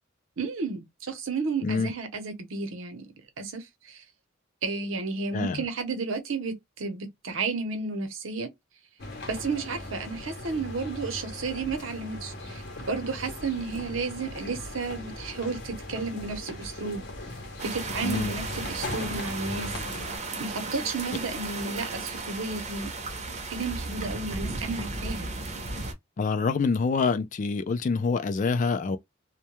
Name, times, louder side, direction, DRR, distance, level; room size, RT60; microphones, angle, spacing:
voice 1, 0.4-3.0 3.4-4.0 4.6-8.5 9.3-17.1 17.6-19.7 20.4-22.9 23.5-25.3, right 4 dB, 80° right, 0.8 m, -32 dB
voice 2, 5.3-5.6 18.0-18.3 26.2-29.0, left 4 dB, 40° left, 0.3 m, -26 dB
sound 1, 9.0-20.2, left 1 dB, 55° left, 0.7 m, -39 dB
sound 2, 17.6-25.9, right 3 dB, 35° right, 0.6 m, -35 dB
2.2 x 2.2 x 2.9 m
head